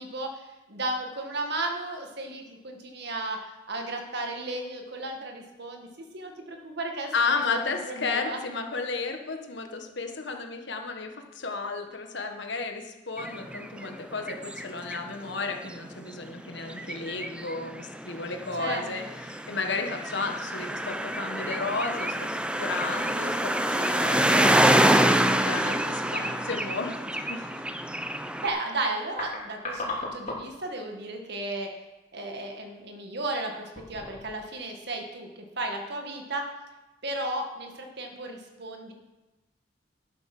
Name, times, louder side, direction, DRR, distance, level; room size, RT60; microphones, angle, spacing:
voice 1, 0.0-5.9 6.1-8.4 18.6-19.1 26.0-26.4 28.4-31.7 32.1-35.3 35.6-36.5 37.0-38.9, right 2 dB, 60° right, 3 dB, 1.9 m, -34 dB
voice 2, 7.1-22.2 22.6-27.6, left 4 dB, 65° left, 4 dB, 1.5 m, -33 dB
sound 1, 13.2-15.0 15.3-15.4 15.7-28.5, right 1 dB, 5° right, 0.5 m, -26 dB
sound 2, 29.1-30.7 30.9-31.1 31.8-32.1 32.6-32.8 33.6-34.5 34.7-34.8, left 2 dB, 45° left, 3.2 m, -37 dB
11.5 x 8.2 x 6.1 m, 1.1 s
head